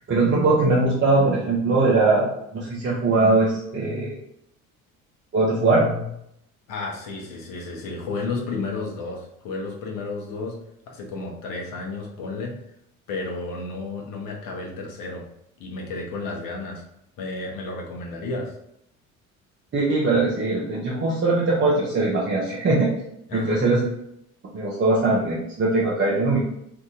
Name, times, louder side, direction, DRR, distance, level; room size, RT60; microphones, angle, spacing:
voice 1, 0.1-2.3 2.5-4.1 5.3-6.1 19.7-22.9 23.3-23.8 24.5-26.4, right 3 dB, 25° right, -5 dB, 0.8 m, -21 dB
voice 2, 6.7-12.6 13.1-15.3 15.6-16.8 17.2-18.5 23.3-23.8, left 3 dB, 50° left, 0 dB, 1.0 m, -32 dB
2.8 x 2.5 x 3.7 m, 0.76 s
figure-of-eight pair, 60°, 43 cm